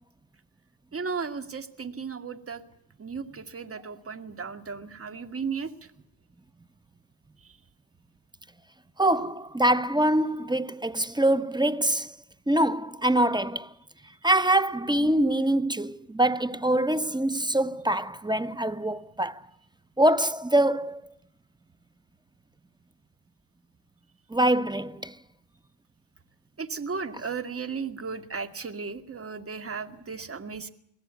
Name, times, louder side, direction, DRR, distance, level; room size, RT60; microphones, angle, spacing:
voice 1, 0.9-2.6 3.0-5.9 7.4-7.6 26.6-30.7, right 5 dB, 25° right, 2.1 m, -35 dB
voice 2, 9.0-12.1 12.5-13.7 14.2-19.4 20.0-21.0 24.3-25.1, right 1 dB, 10° right, 0.8 m, -24 dB
23.0 x 17.0 x 8.2 m
supercardioid pair, 80°, 49 cm